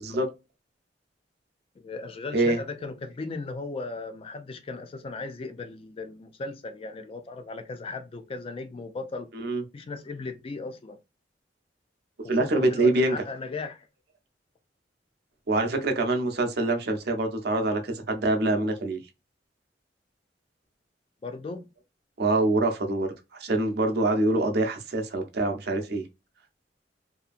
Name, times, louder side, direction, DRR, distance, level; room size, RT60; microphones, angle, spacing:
voice 1, 1.8-9.3 9.7-11.0 12.2-13.9 21.2-21.6, left 3 dB, 30° left, 0.3 m, -37 dB
voice 2, 12.3-13.2 15.5-19.0 22.2-26.0, right 2 dB, 65° right, 0.6 m, -25 dB
2.7 x 2.5 x 2.4 m
head